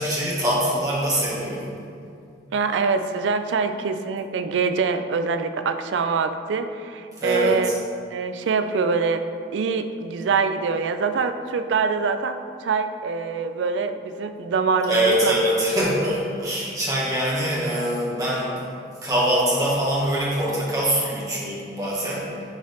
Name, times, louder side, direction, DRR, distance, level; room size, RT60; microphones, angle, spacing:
voice 1, 0.0-1.7 7.2-7.7 14.9-18.6 19.0-22.2, equal, 20° right, -6 dB, 1.4 m, -23 dB
voice 2, 2.5-7.7 8.1-9.2 9.5-15.3, right 5 dB, 90° right, 9 dB, 0.4 m, -24 dB
10.5 x 3.9 x 3.5 m, 2.4 s
head